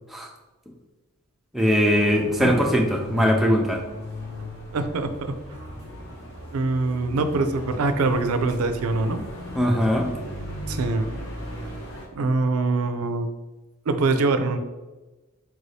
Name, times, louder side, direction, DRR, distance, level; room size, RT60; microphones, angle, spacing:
voice 1, 1.5-3.8 9.6-10.1, equal, ahead, -1 dB, 0.4 m, -20 dB
sound 1, 1.9-12.1, equal, 60° left, 1.2 m, -36 dB
voice 2, 2.4-2.7 4.7-5.4 6.5-9.2 10.7-11.1 12.1-13.3 13.9-14.6, right 3 dB, 85° right, 8 dB, 0.4 m, -24 dB
4.7 x 2.6 x 3.2 m, 1.1 s
head